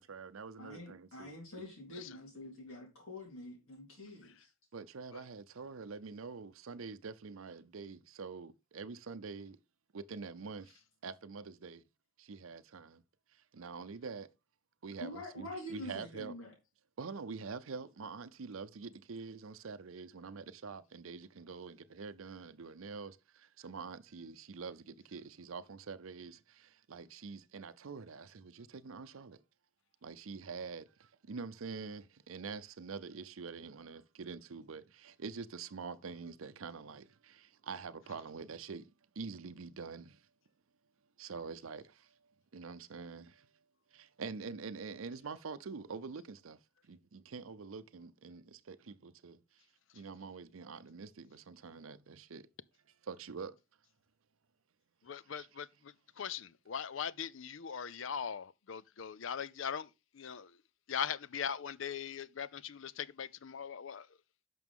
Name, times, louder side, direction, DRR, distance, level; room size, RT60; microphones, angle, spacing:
voice 1, 0.0-1.3 4.7-9.6 9.9-11.8 12.2-13.0 13.3-14.3 14.8-16.3 17.0-29.4 30.0-38.9 39.2-40.2 41.2-42.1 42.5-43.5 43.9-46.6 46.9-49.4 49.9-52.5 53.0-53.6 55.3-55.5, right 5 dB, 80° right, 0.6 m, -46 dB
voice 2, 0.6-4.5 15.0-16.5, left 1 dB, 85° left, 4.0 m, -46 dB
voice 3, 55.1-59.9 60.1-60.5 60.9-64.1, left 7 dB, 70° left, 0.5 m, -40 dB
11.0 x 6.0 x 3.6 m
head